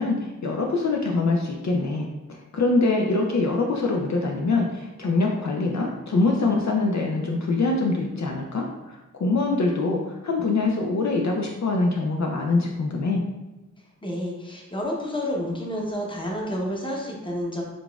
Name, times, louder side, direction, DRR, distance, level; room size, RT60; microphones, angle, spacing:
voice 1, 0.0-13.2, left 3 dB, 60° left, 0 dB, 0.4 m, -24 dB
voice 2, 14.0-17.6, equal, 15° left, -2 dB, 0.8 m, -29 dB
3.9 x 3.5 x 2.3 m, 1.0 s
wide cardioid pair, 65°, 33 cm